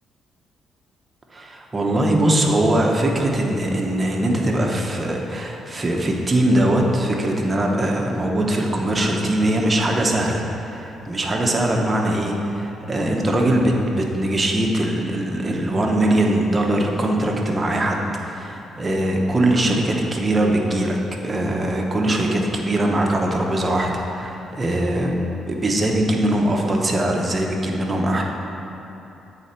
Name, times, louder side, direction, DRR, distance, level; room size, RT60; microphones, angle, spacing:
voice 1, 1.3-21.0 21.2-25.1 25.5-28.2, right 1 dB, 25° right, 0 dB, 0.8 m, -21 dB
8.1 x 4.2 x 4.3 m, 3.0 s
cardioid pair, 90°, 0 cm